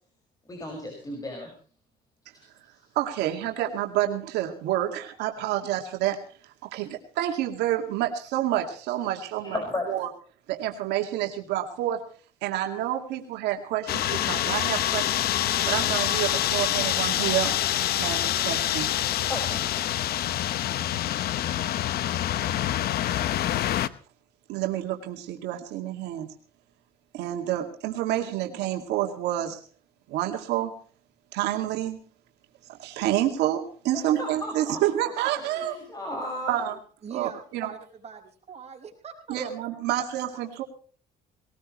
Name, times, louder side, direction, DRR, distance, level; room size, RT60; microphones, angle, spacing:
voice 1, 0.5-1.5 2.3-2.4 9.4-9.9 19.3-19.7 33.9-36.7, left 1 dB, 20° left, 5.8 m, -35 dB
voice 2, 3.0-6.2 6.6-9.6 9.9-10.1 10.5-12.0 12.4-15.3 15.7-17.6 18.0-18.9 24.5-26.3 27.1-29.6 30.1-30.7 31.3-32.0 32.7-35.7 36.5-36.8 37.1-37.7 39.3-40.6, right 12 dB, 90° right, 2.3 m, -28 dB
sound 1, 13.9-23.9, left 12 dB, 65° left, 0.9 m, -26 dB
voice 3, 37.0-39.5 39.9-40.0 40.3-40.4, right 7 dB, 40° right, 5.2 m, -42 dB
20.5 x 18.5 x 3.1 m
cardioid pair, 110°, 17 cm